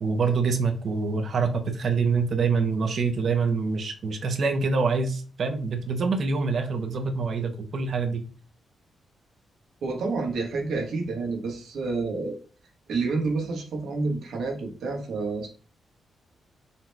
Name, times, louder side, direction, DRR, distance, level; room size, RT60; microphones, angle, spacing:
voice 1, 0.0-8.2, right 4 dB, 45° right, 6 dB, 0.5 m, -25 dB
voice 2, 9.8-12.4 12.9-15.5, right 3 dB, 80° right, 1 dB, 1.1 m, -29 dB
4.0 x 2.1 x 4.4 m, 0.38 s
wide cardioid pair, 175°, 0 cm